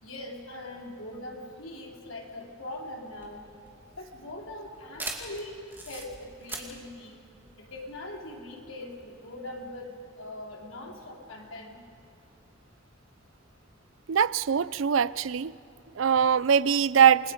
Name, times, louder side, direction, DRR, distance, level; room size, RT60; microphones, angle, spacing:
voice 1, 0.0-3.5 3.9-7.2 7.6-11.8 15.7-15.8, left 1 dB, 85° left, 0 dB, 3.5 m, -41 dB
Shutter sound Chinon, 3.1-8.2, right 2 dB, 10° right, 2.4 m, -41 dB
voice 2, 14.1-15.5 16.0-17.3, right 7 dB, 75° right, 19 dB, 0.5 m, -22 dB
29.0 x 21.0 x 5.2 m, 2.7 s
head